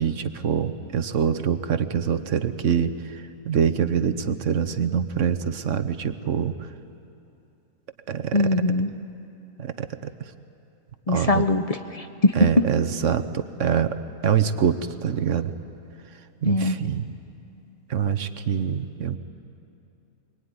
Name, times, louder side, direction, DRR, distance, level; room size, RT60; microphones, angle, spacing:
voice 1, 0.0-6.7 8.1-8.5 9.6-10.1 11.1-11.4 12.4-13.9 14.2-15.5 16.4-17.1 17.9-19.2, right 7 dB, 60° right, 11 dB, 1.2 m, -25 dB
voice 2, 8.3-8.9 11.1-12.3 16.4-16.8, left 2 dB, 35° left, 8 dB, 0.7 m, -22 dB
24.5 x 23.0 x 9.6 m, 2.7 s
omnidirectional pair, 1.5 m